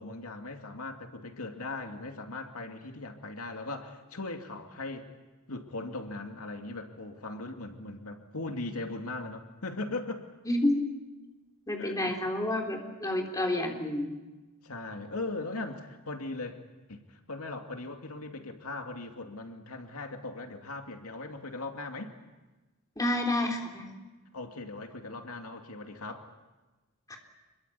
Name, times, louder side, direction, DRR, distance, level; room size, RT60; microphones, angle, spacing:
voice 1, 0.0-5.1 5.5-10.2 11.8-12.2 14.6-16.6 16.9-22.1 24.3-26.3, left 2 dB, 85° left, 4 dB, 2.5 m, -39 dB
voice 2, 10.5-10.8 11.7-14.1 23.0-23.9 27.1-27.2, left 1 dB, 15° left, 1 dB, 3.6 m, -29 dB
26.5 x 23.0 x 8.4 m, 1.1 s
head